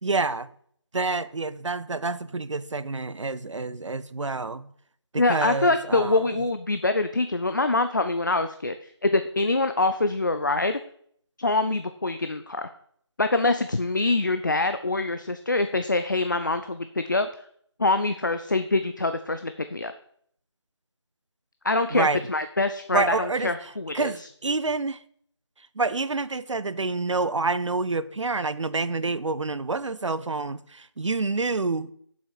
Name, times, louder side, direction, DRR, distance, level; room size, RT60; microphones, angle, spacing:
voice 1, 0.0-0.5 0.9-4.7 5.1-6.3 21.9-22.2 22.9-25.0 25.8-31.9, right 3 dB, 90° right, 0.6 m, -28 dB
voice 2, 5.2-10.8 11.4-12.7 13.2-17.3 17.8-19.9 21.6-24.3, left 2 dB, 40° left, 0.5 m, -25 dB
7.2 x 5.8 x 6.4 m
figure-of-eight pair, 170°, 15 cm